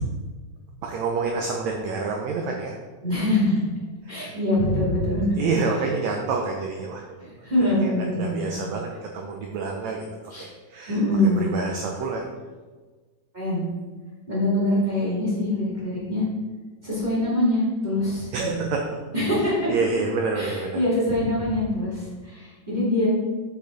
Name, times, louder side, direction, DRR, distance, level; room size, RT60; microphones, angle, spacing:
voice 1, 0.8-2.8 4.0-4.3 5.4-7.0 7.8-10.1 10.4-11.0 11.4-12.2 18.3-19.0 19.7-20.8, right 4 dB, 80° right, 1 dB, 1.6 m, -28 dB
voice 2, 3.0-3.6 4.1-5.4 7.2-8.5 10.3-10.5 10.9-11.5 13.3-13.7 14.3-16.2 16.8-18.6 19.1-19.7 20.4-23.1, left 1 dB, 15° right, -8 dB, 2.2 m, -24 dB
7.2 x 7.2 x 4.0 m, 1.4 s
omnidirectional pair, 4.1 m